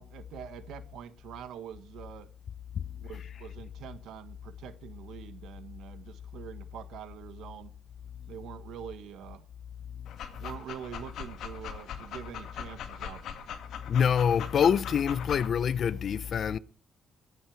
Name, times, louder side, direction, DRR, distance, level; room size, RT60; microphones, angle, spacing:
voice 1, 0.0-2.3 3.0-7.7 8.3-9.5 10.4-13.3, right 9 dB, 80° right, 1.4 m, -45 dB
Dog, 10.0-15.5, left 8 dB, 75° left, 2.0 m, -41 dB
voice 2, 13.9-16.6, left 7 dB, 55° left, 0.7 m, -25 dB
22.0 x 8.5 x 4.7 m
cardioid pair, 90°, 0 cm